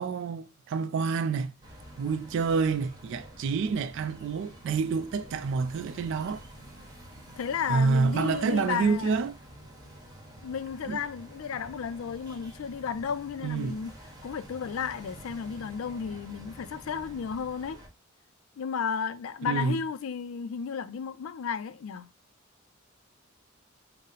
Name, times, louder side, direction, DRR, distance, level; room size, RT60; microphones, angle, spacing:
voice 1, 0.0-1.5 2.0-6.4 7.7-9.4 10.8-11.0 13.4-13.8 19.4-19.8, right 5 dB, 60° right, 0.3 m, -28 dB
sound 1, 1.6-17.9, equal, 20° right, 1.2 m, -48 dB
voice 2, 7.4-9.1 10.4-13.9 14.2-17.8 18.6-22.1, left 6 dB, 75° left, 0.4 m, -33 dB
4.0 x 2.0 x 3.8 m
head